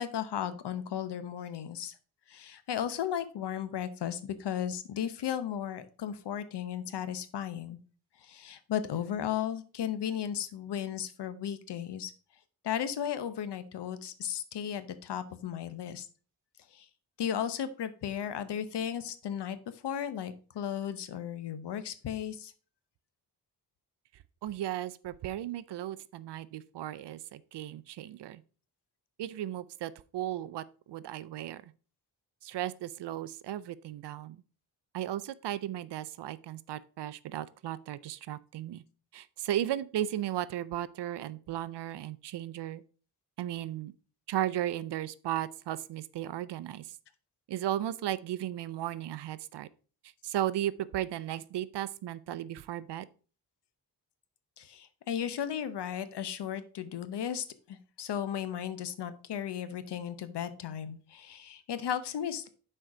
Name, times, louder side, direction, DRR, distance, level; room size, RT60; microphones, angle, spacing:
voice 1, 0.0-1.9 2.3-7.8 8.2-12.1 12.6-16.1 16.7-16.9 17.2-19.6 19.8-22.5 54.6-62.5, left 9 dB, 80° left, 0.8 m, -35 dB
voice 2, 24.4-28.4 29.2-31.6 32.4-34.4 34.9-38.8 39.1-42.8 43.4-43.9 44.3-46.9 47.5-49.7 50.2-53.1, right 12 dB, 80° right, 0.5 m, -35 dB
6.4 x 4.5 x 4.6 m
wide cardioid pair, 115°, 40 cm